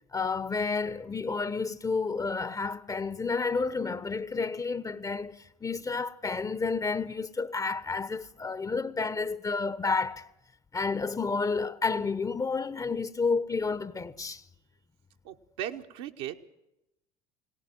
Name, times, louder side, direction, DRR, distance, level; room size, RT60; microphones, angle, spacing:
voice 1, 0.1-10.3 10.7-14.4, left 4 dB, 20° left, 0.9 m, -30 dB
voice 2, 15.2-16.5, right 11 dB, 60° right, 1.2 m, -37 dB
21.5 x 18.0 x 7.7 m
figure-of-eight pair, 65°, 19 cm